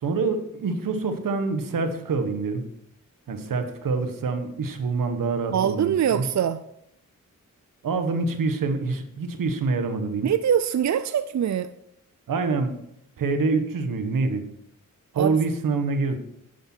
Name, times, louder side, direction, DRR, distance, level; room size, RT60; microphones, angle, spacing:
voice 1, 0.0-2.6 3.3-6.2 7.8-10.3 12.3-12.8 13.2-14.5 15.1-16.2, right 4 dB, 90° right, 8 dB, 1.4 m, -26 dB
voice 2, 5.5-6.6 10.2-11.7 15.2-15.4, right 9 dB, 60° right, 12 dB, 0.5 m, -23 dB
10.5 x 9.7 x 4.5 m, 0.74 s
cardioid pair, 80°, 32 cm